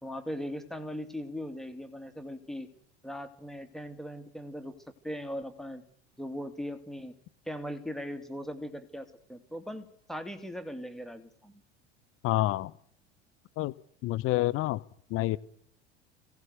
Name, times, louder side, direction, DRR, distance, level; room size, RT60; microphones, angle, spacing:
voice 1, 0.0-2.7 3.0-4.7 5.0-5.8 6.2-7.1 7.5-11.5, equal, ahead, 8 dB, 2.3 m, -39 dB
voice 2, 12.2-12.7 13.6-13.7 14.0-14.8 15.1-15.4, left 17 dB, 40° left, 18 dB, 0.9 m, -27 dB
23.5 x 17.0 x 6.7 m, 0.65 s
figure-of-eight pair, 70°, 34 cm